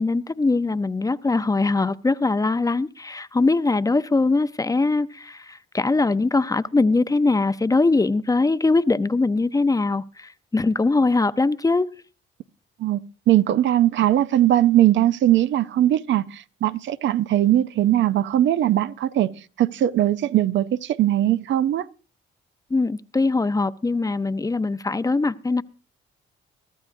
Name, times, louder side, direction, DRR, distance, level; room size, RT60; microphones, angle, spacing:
voice 1, 0.0-11.9 22.7-25.6, left 3 dB, 15° left, 0.6 m, -21 dB
voice 2, 13.3-19.3 19.6-21.9, right 13 dB, 70° right, 0.6 m, -20 dB
23.0 x 13.0 x 2.6 m
cardioid pair, 90°, 20 cm